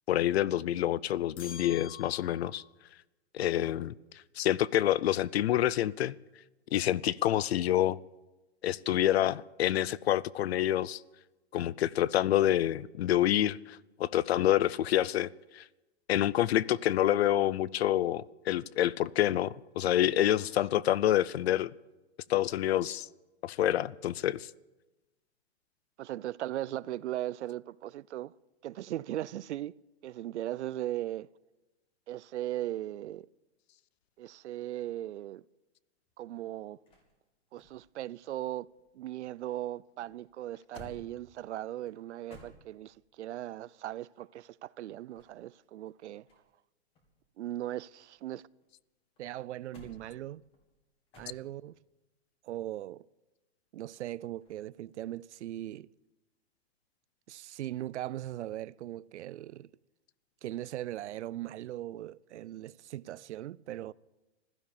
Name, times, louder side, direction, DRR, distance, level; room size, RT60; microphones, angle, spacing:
voice 1, 0.1-2.6 3.3-3.9 4.4-6.2 6.7-8.0 8.6-11.0 11.5-15.3 15.5-15.6 16.1-21.7 22.3-23.1 23.4-24.5, left 12 dB, 65° left, 0.6 m, -27 dB
sound 1, 1.4-2.7, left 8 dB, 80° left, 1.4 m, -47 dB
voice 2, 3.4-3.7 26.0-28.4 28.6-29.7 30.0-31.3 32.1-33.3 34.2-35.4 36.2-36.8 37.5-38.7 38.9-46.2 47.4-48.5 49.2-50.4 51.2-51.8 52.4-53.0 53.7-55.9 57.3-59.7 60.4-63.9, right 13 dB, 85° right, 0.6 m, -38 dB
sound 2, 36.1-39.2 39.5-43.1 44.9-46.6 46.9-48.7 49.2-51.8 54.4-54.7, equal, 15° left, 2.1 m, -57 dB
16.0 x 12.5 x 7.1 m
hypercardioid pair, 170°, 33 cm